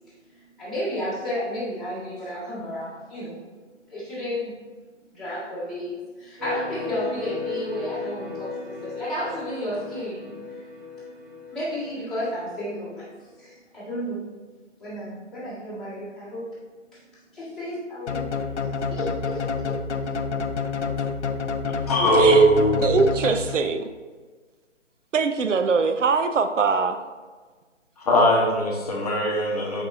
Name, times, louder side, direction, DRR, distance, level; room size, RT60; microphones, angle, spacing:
voice 1, 0.6-3.4 3.9-4.5 5.1-10.3 10.6-10.7 11.5-13.1 13.4-14.2 14.8-16.5 16.9-17.0 17.3-18.3 18.9-19.8, equal, ahead, -14 dB, 1.6 m, -32 dB
sound 1, 6.4-13.1, left 4 dB, 15° right, 1.6 m, -36 dB
sound 2, 18.1-23.8, left 5 dB, 65° left, 0.6 m, -28 dB
voice 2, 21.8-22.9 28.0-29.8, right 1 dB, 30° left, -2 dB, 0.9 m, -19 dB
voice 3, 22.8-23.9 25.1-27.0, right 4 dB, 80° right, 8 dB, 0.6 m, -22 dB
7.8 x 4.7 x 2.6 m, 1.4 s
figure-of-eight pair, 150°, 37 cm